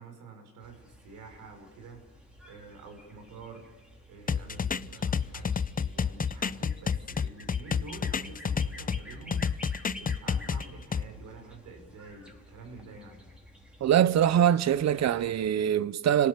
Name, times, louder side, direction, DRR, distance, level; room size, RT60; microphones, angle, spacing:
voice 1, 0.0-2.1 2.4-3.7 4.1-13.3, right 3 dB, 90° right, 5.7 m, -48 dB
sound 1, 0.6-15.5, equal, 5° right, 5.2 m, -51 dB
sound 2, 4.3-9.0 9.3-11.0, left 6 dB, 30° left, 0.7 m, -29 dB
voice 2, 13.8-16.3, right 10 dB, 60° right, 1.0 m, -23 dB
30.0 x 19.0 x 6.9 m
cardioid pair, 90°, 30 cm